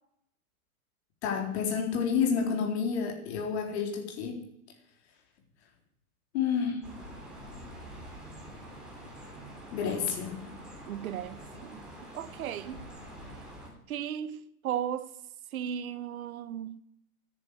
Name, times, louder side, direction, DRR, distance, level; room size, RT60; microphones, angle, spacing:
voice 1, 1.2-4.4 6.3-6.8 9.7-10.4, left 6 dB, 45° left, 4.2 m, -29 dB
sound 1, 6.8-13.7, equal, ahead, 3.7 m, -46 dB
voice 2, 10.9-11.8 12.1-12.9 13.9-15.1 15.5-16.8, right 10 dB, 70° right, 1.1 m, -36 dB
14.0 x 10.5 x 9.8 m
supercardioid pair, 170°, 44 cm